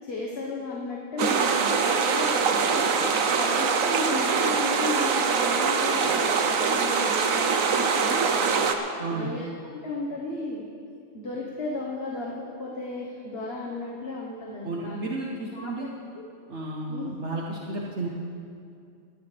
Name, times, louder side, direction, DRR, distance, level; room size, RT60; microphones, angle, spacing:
voice 1, 0.0-3.0 3.4-9.4 9.8-10.6 11.1-12.3 12.6-15.0 15.5-15.9 16.9-17.1, left 2 dB, 50° left, -3 dB, 1.6 m, -34 dB
sound 1, 1.2-8.7, right 5 dB, 85° right, 1.3 m, -23 dB
voice 2, 9.0-9.3 14.6-15.9 16.5-18.1, right 2 dB, 60° right, -2 dB, 1.4 m, -32 dB
19.5 x 14.0 x 3.4 m, 2.4 s
omnidirectional pair, 1.4 m